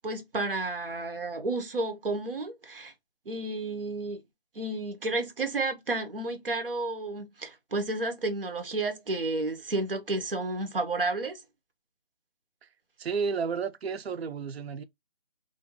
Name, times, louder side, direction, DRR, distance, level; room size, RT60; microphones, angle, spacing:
voice 1, 0.0-2.9 3.3-4.2 4.5-11.4, right 2 dB, 60° right, 0.9 m, -31 dB
voice 2, 13.0-14.8, right 5 dB, 75° right, 0.5 m, -32 dB
2.6 x 2.2 x 2.9 m
figure-of-eight pair, 175°, 31 cm